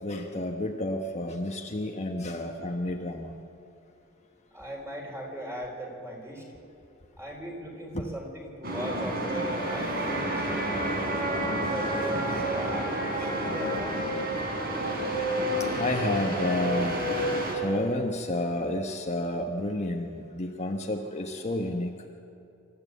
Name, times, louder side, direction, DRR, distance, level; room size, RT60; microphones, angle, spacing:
voice 1, 0.0-3.3 7.9-8.1 15.6-17.0 17.5-22.0, left 1 dB, 35° left, 2 dB, 1.2 m, -30 dB
voice 2, 4.5-6.4 7.2-10.6 11.7-14.1, right 1 dB, 15° right, 0 dB, 4.1 m, -38 dB
sound 1, 8.6-17.6, right 1 dB, 50° right, 3.5 m, -29 dB
26.5 x 13.5 x 8.4 m, 2.6 s
head